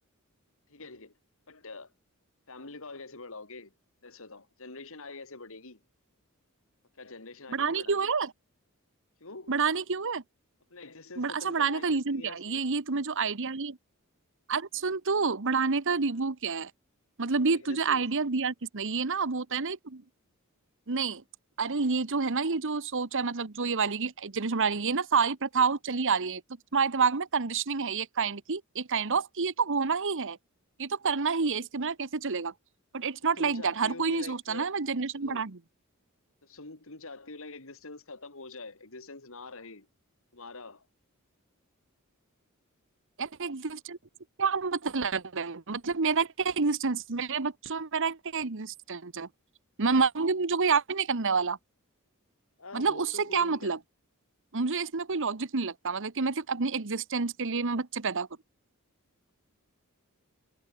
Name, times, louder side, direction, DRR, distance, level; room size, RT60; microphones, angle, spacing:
voice 1, 0.7-1.1 1.5-1.9 2.5-3.7 4.0-5.8 7.0-8.1 9.2-9.5 10.7-12.6 16.1-16.2 17.5-18.1 33.3-34.7 35.1-35.5 36.4-39.9 40.3-40.9 52.6-53.8, left 3 dB, 65° left, 3.0 m, -45 dB
voice 2, 7.5-8.3 9.5-10.2 11.2-13.8 14.5-16.7 17.2-20.0 20.9-21.2 21.6-26.4 26.7-30.4 30.8-32.5 32.9-35.6 43.2-44.0 44.4-49.3 49.8-51.6 52.7-53.8 54.5-58.3, right 5 dB, 60° right, 1.2 m, -28 dB
head